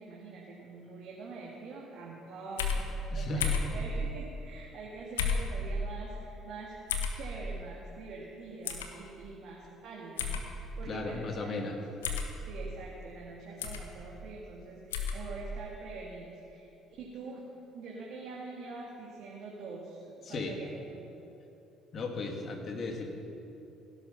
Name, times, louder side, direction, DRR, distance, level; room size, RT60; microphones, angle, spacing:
voice 1, 0.0-6.8 7.1-12.0 12.5-17.5 17.7-21.1, right 3 dB, 65° right, -3 dB, 2.3 m, -45 dB
sound 1, 2.6-2.8 3.4-3.7 5.2-5.5 6.9-7.2 8.7-8.9 10.2-10.4 12.0-12.3 13.6-13.8 14.9-15.2, left 7 dB, 85° left, 1.2 m, -30 dB
voice 2, 3.1-3.6 10.8-11.8 20.2-20.6 21.9-23.1, left 3 dB, 50° left, 3 dB, 2.4 m, -36 dB
17.0 x 11.5 x 5.9 m, 2.8 s
hypercardioid pair, 55°, 0 cm